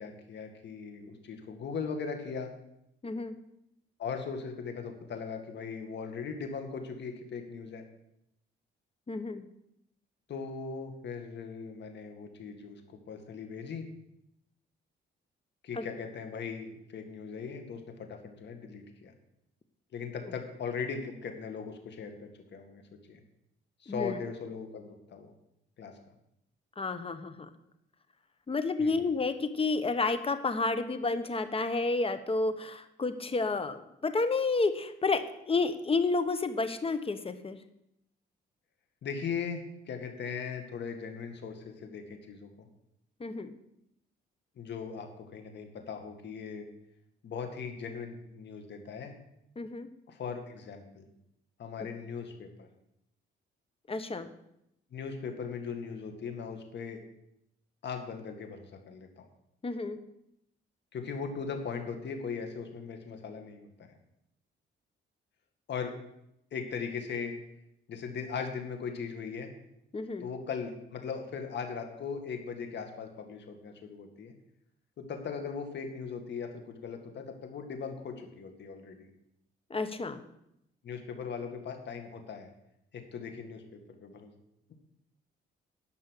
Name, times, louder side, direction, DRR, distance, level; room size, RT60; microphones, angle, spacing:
voice 1, 0.0-2.5 4.0-7.8 10.3-12.8 13.1-13.9 15.6-19.1 19.9-22.8 23.1-23.2 23.8-25.3 25.8-25.9 28.8-29.0 39.0-42.5 44.6-46.7 47.2-49.1 50.1-51.1 51.6-52.7 54.9-57.0 57.8-59.1 60.9-63.9 65.7-65.9 66.5-67.3 67.9-69.5 70.2-74.3 75.0-79.1 80.8-82.5 82.9-83.6 83.9-84.3, left 5 dB, 60° left, 5 dB, 2.1 m, -39 dB
voice 2, 3.0-3.4 9.1-9.4 15.7-15.8 23.9-24.2 26.8-27.5 28.5-37.6 43.2-43.5 49.6-49.9 51.8-51.9 53.9-54.3 59.6-60.0 69.9-70.3 79.7-80.2, left 3 dB, 30° left, 10 dB, 1.1 m, -30 dB
12.0 x 5.6 x 8.3 m, 0.81 s
cardioid pair, 90°, 20 cm